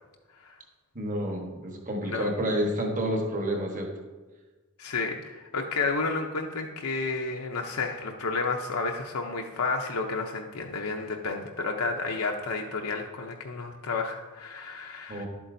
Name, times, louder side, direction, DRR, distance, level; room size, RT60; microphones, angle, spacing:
voice 1, 0.9-3.9 15.1-15.3, equal, 35° right, 2 dB, 1.3 m, -29 dB
voice 2, 4.8-15.3, left 4 dB, 75° left, 1 dB, 0.7 m, -31 dB
11.0 x 8.3 x 2.7 m, 1.3 s
head